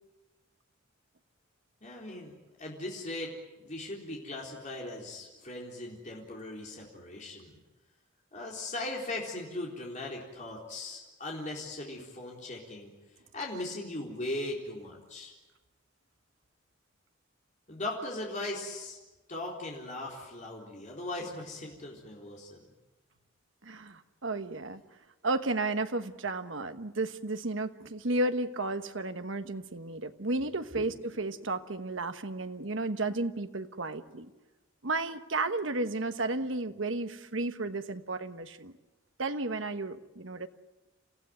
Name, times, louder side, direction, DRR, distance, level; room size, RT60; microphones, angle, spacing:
voice 1, 1.8-3.3 3.6-7.6 8.3-12.9 13.3-15.3 17.7-19.0 19.3-22.6 30.8-30.9, left 2 dB, 40° left, -2 dB, 4.0 m, -39 dB
voice 2, 23.6-24.8 25.2-34.3 34.8-38.7 39.2-40.5, right 2 dB, 75° right, 9 dB, 1.3 m, -33 dB
28.5 x 15.5 x 9.5 m, 1.1 s
head